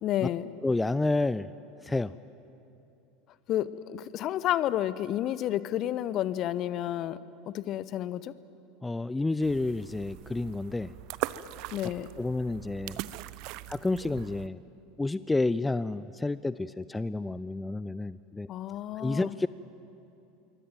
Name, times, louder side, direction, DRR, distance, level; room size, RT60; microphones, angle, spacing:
voice 1, 0.0-0.5 3.5-7.2 7.5-8.3 11.7-12.1 18.5-19.3, left 12 dB, 45° left, 16 dB, 1.0 m, -30 dB
voice 2, 0.6-1.5 1.8-2.1 8.8-10.9 12.2-13.0 13.7-14.6 15.0-18.5 19.0-19.5, left 2 dB, 10° left, 16 dB, 0.5 m, -30 dB
sound 1, 9.4-14.5, right 16 dB, 50° right, 0.7 m, -40 dB
26.5 x 23.5 x 9.2 m, 2.9 s
figure-of-eight pair, 75°, 0 cm